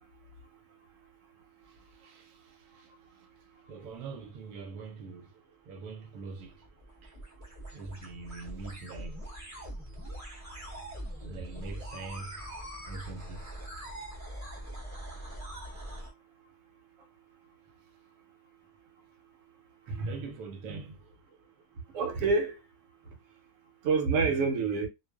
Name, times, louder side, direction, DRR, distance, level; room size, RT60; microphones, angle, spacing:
voice 1, 1.7-2.9 3.7-5.3 5.7-6.6 7.0-7.2 7.7-9.2 11.2-13.5 20.1-21.0 24.2-24.7, right 4 dB, 85° right, 1.1 m, -44 dB
sound 1, 6.2-16.1, right 1 dB, 20° right, 0.5 m, -42 dB
voice 2, 21.9-22.6 23.8-24.9, right 4 dB, 65° right, 1.0 m, -27 dB
2.5 x 2.3 x 2.2 m
omnidirectional pair, 1.6 m